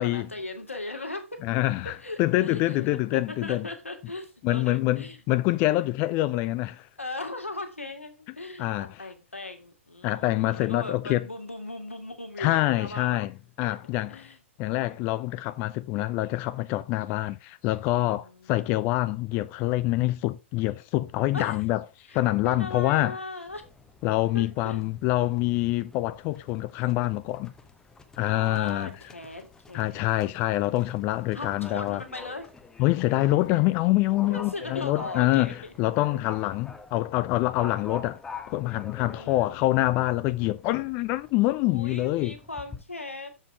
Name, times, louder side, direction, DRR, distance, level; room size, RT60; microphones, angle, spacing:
voice 1, 0.0-1.3 1.8-5.2 7.0-13.3 13.6-13.8 14.1-14.4 18.1-19.0 21.3-21.6 22.1-22.2 22.4-23.6 24.3-24.8 28.2-30.1 31.3-32.5 34.3-35.7 39.0-39.6 41.6-43.3, left 2 dB, 80° left, 1.8 m, -38 dB
voice 2, 1.4-3.7 4.4-6.9 8.6-9.0 10.0-11.2 12.4-13.3 13.6-14.3 14.6-21.8 22.1-23.2 24.0-27.5 28.2-28.9 29.7-32.0 32.8-38.2 38.5-42.3, left 17 dB, 30° left, 0.4 m, -26 dB
Livestock farm animals working animals, 23.5-42.8, left 4 dB, 10° left, 0.8 m, -47 dB
7.2 x 5.4 x 4.4 m
figure-of-eight pair, 110°, 7 cm